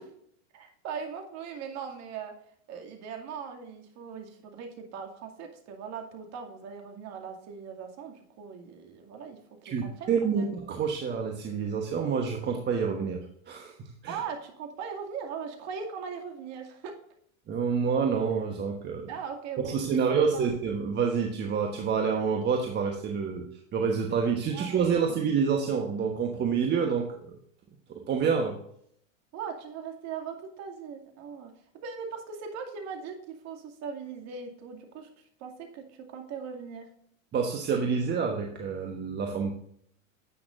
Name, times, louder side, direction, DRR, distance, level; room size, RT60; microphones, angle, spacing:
voice 1, 0.5-2.3 2.7-9.4 9.8-10.5 14.1-16.9 19.1-20.5 24.5-25.1 29.3-31.5 31.8-35.1 35.4-35.8 36.1-36.9, right 6 dB, 40° right, 3 dB, 2.3 m, -39 dB
voice 2, 9.6-13.2 13.5-14.2 17.5-19.1 19.6-23.4 23.7-27.4 27.9-28.6 37.3-39.5, right 6 dB, 25° right, 2 dB, 1.2 m, -28 dB
10.5 x 8.6 x 2.6 m, 0.67 s
hypercardioid pair, 115°, 40 cm